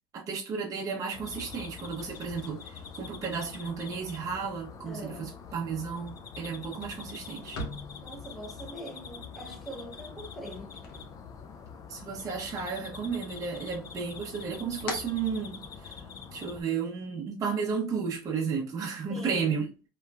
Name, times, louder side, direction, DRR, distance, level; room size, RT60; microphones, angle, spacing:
voice 1, 0.1-7.6 11.9-16.0 16.3-19.7, right 5 dB, 30° right, 0.7 m, -33 dB
sound 1, 1.1-16.6, left 6 dB, 30° left, 0.3 m, -45 dB
sound 2, 2.0-11.9 12.2-13.1 13.4-16.1, left 2 dB, 90° left, 0.9 m, -46 dB
voice 2, 4.8-5.3 8.0-10.7 19.1-19.7, right 1 dB, ahead, 1.0 m, -43 dB
3.0 x 2.3 x 2.3 m
supercardioid pair, 125°, 12 cm